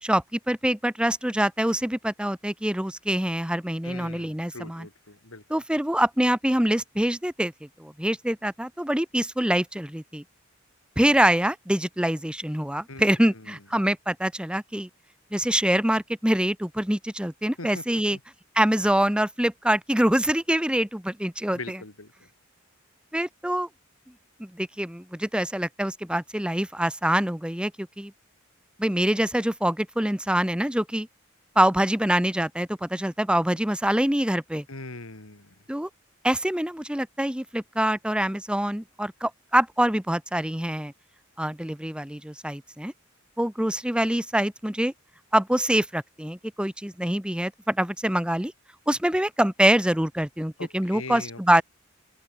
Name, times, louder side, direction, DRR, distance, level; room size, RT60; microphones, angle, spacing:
voice 1, 0.0-4.9 5.5-7.5 7.8-10.2 11.0-14.9 15.3-18.2 18.5-21.8 23.1-23.7 24.4-28.1 28.8-31.1 31.5-34.6 35.7-35.9 36.2-40.9 41.4-42.9 43.4-44.9 45.3-48.5 48.9-51.6, right 1 dB, 5° right, 1.2 m, -25 dB
voice 2, 3.8-5.4 12.9-13.0 13.3-13.5 17.6-17.8 18.1-18.2 21.5-22.3 34.7-35.5 50.6-51.6, left 3 dB, 90° left, 3.4 m, -41 dB
open air
head